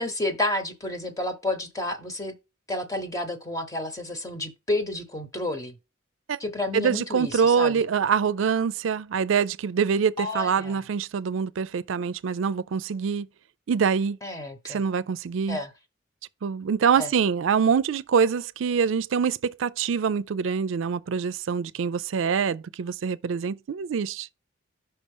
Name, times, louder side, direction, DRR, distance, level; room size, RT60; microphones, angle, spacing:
voice 1, 0.0-2.4 2.7-5.7 6.4-7.8 10.2-10.8 14.2-14.8 15.5-15.7 17.0-17.1, left 1 dB, 20° left, 1.0 m, -30 dB
voice 2, 6.7-13.3 13.7-14.2 14.7-15.6 16.4-24.3, right 6 dB, 90° right, 0.4 m, -25 dB
5.7 x 4.1 x 5.5 m
head